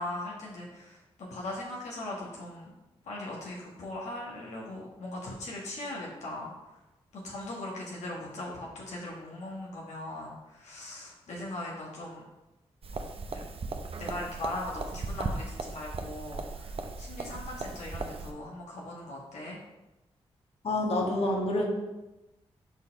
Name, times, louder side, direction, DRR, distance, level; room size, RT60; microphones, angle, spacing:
voice 1, 0.0-2.7 3.0-6.5 7.1-12.3 13.3-13.4 14.0-19.6, left 1 dB, 75° left, -4 dB, 1.4 m, -39 dB
sound 1, 12.8-18.3, right 3 dB, 55° right, 0.8 m, -37 dB
voice 2, 20.6-21.6, left 1 dB, 60° left, -1 dB, 1.5 m, -27 dB
5.3 x 4.2 x 5.1 m, 1.0 s
supercardioid pair, 40°, 12 cm